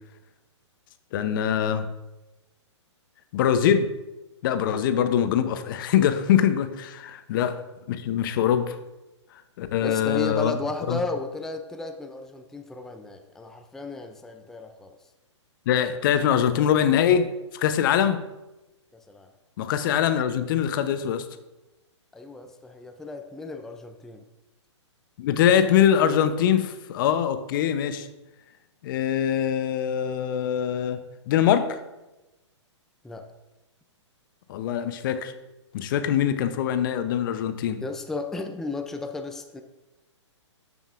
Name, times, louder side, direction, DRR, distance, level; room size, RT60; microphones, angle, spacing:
voice 1, 1.1-1.9 3.3-3.9 4.4-7.6 7.9-8.8 9.6-10.5 10.9-11.0 15.7-18.2 19.6-21.2 25.2-28.1 28.8-31.8 34.5-35.3 35.7-37.8, left 9 dB, 45° left, 10 dB, 0.7 m, -23 dB
voice 2, 9.8-15.0 18.9-19.3 22.1-24.2 33.0-33.3 37.8-39.6, left 2 dB, 5° left, 5 dB, 0.4 m, -34 dB
13.0 x 5.4 x 2.5 m, 1.0 s
hypercardioid pair, 130°, 16 cm